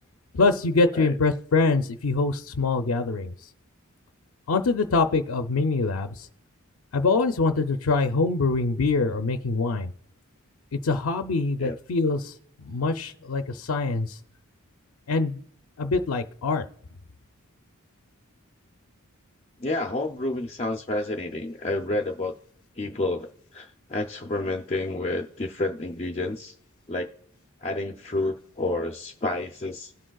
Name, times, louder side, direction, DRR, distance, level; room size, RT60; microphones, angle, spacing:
voice 1, 0.3-3.3 4.5-6.3 6.9-9.9 10.7-12.3 12.6-14.2 15.1-15.4 15.8-16.6, left 3 dB, 80° left, 6 dB, 0.5 m, -24 dB
voice 2, 19.6-22.3 22.8-26.5 26.9-27.1 27.6-29.9, left 2 dB, 30° left, 3 dB, 0.5 m, -29 dB
18.0 x 6.3 x 2.3 m, 0.69 s
head